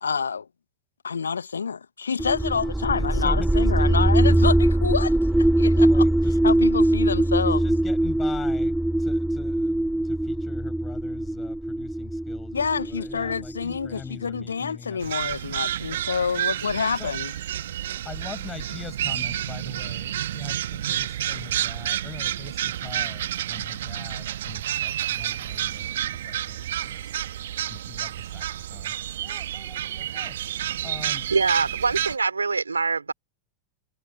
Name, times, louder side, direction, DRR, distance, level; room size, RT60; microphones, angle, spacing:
voice 1, 0.0-0.5 1.0-6.1 6.4-7.7 12.5-17.3, left 6 dB, 75° left, 0.9 m, -28 dB
sound 1, 2.2-14.0, right 1 dB, 5° right, 2.0 m, -22 dB
voice 2, 2.3-4.4 5.7-6.4 7.4-15.1 16.9-17.1 18.0-25.9 26.2-27.1 27.7-30.4 30.8-31.3, left 6 dB, 20° left, 6.2 m, -42 dB
sound 2, 15.0-32.2, right 12 dB, 60° right, 1.4 m, -30 dB
voice 3, 31.3-33.1, right 4 dB, 75° right, 3.7 m, -24 dB
figure-of-eight pair, 90°, 0 cm